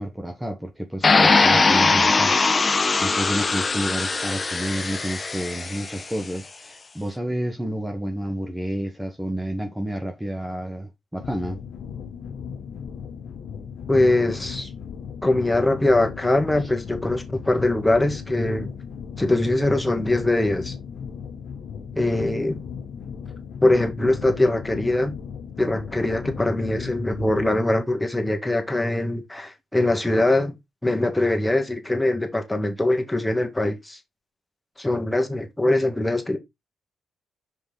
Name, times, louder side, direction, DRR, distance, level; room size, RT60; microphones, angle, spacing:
voice 1, 0.0-2.4 3.0-11.6 16.6-16.7, right 1 dB, 10° right, 1.3 m, -30 dB
sound 1, 1.0-6.0, left 3 dB, 35° left, 0.9 m, -20 dB
sound 2, 11.2-27.6, left 7 dB, 65° left, 0.9 m, -37 dB
voice 2, 13.9-14.7 15.2-18.7 19.2-20.7 21.9-22.6 23.6-25.2 25.6-30.6 30.8-34.0 34.8-36.4, left 2 dB, 10° left, 1.9 m, -22 dB
5.2 x 5.1 x 3.9 m
hypercardioid pair, 50°, 0 cm